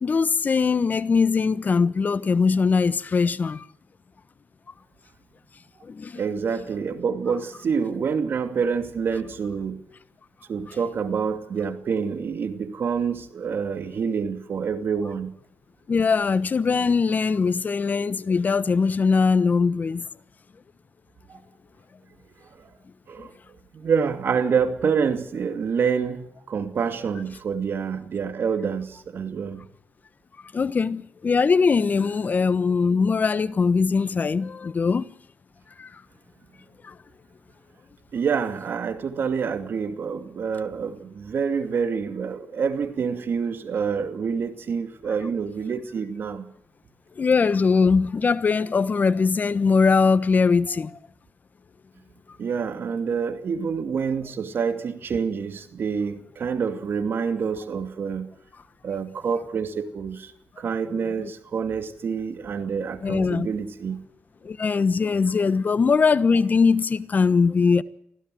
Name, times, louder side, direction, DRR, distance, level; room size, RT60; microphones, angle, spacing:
voice 1, 0.0-3.7 5.8-6.2 15.9-20.1 23.2-23.3 30.5-35.1 35.8-36.0 36.8-37.0 47.2-51.0 61.0-61.3 63.0-63.5 64.4-67.8, left 5 dB, 45° left, 1.1 m, -21 dB
voice 2, 6.2-9.8 10.5-15.3 21.3-21.4 22.6-22.7 23.1-23.3 23.7-29.7 38.1-46.5 52.4-58.3 58.8-60.3 60.6-64.0, right 6 dB, 60° right, 2.5 m, -27 dB
24.0 x 15.5 x 7.8 m
cardioid pair, 65°, 4 cm